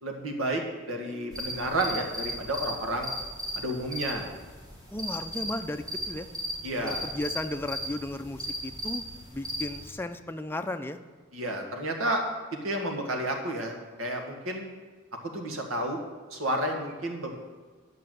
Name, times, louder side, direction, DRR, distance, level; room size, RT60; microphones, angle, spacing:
voice 1, 0.0-3.1 3.5-4.3 6.6-7.1 11.3-12.2 12.6-14.7 15.3-16.0 16.3-17.4, right 1 dB, 85° right, 2 dB, 1.8 m, -31 dB
sound 1, 1.3-9.9, equal, 20° right, 1.8 m, -37 dB
voice 2, 4.9-6.3 6.8-9.0 9.3-11.0, left 1 dB, 10° left, 7 dB, 0.5 m, -35 dB
9.8 x 5.8 x 7.9 m, 1.4 s
head